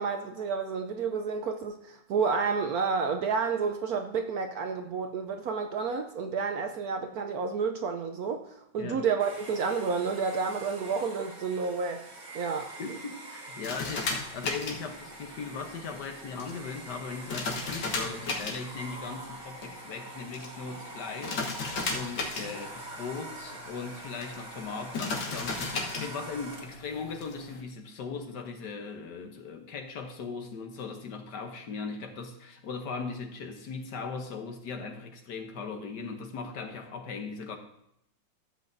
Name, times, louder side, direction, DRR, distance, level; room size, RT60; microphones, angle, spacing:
voice 1, 0.0-12.1 12.3-12.7, right 5 dB, 65° right, 1.0 m, -30 dB
Domestic sounds home sounds, 9.2-26.9, right 2 dB, 40° right, 1.7 m, -45 dB
voice 2, 12.8-37.6, left 4 dB, 70° left, 1.5 m, -39 dB
sound 1, 13.6-27.6, left 3 dB, 85° left, 2.0 m, -37 dB
14.5 x 7.7 x 2.6 m
omnidirectional pair, 2.0 m